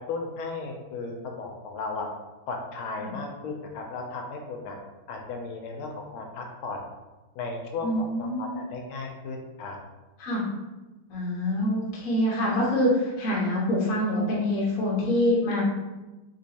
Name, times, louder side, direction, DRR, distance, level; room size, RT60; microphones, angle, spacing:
voice 1, 0.1-2.1 2.5-4.8 5.1-6.8 7.4-7.9 8.2-9.8, left 3 dB, 85° left, 1 dB, 1.4 m, -35 dB
voice 2, 7.8-8.6 10.2-10.5 11.1-15.6, left 1 dB, 50° left, -5 dB, 1.1 m, -25 dB
3.7 x 3.0 x 2.8 m, 1.1 s
omnidirectional pair, 2.3 m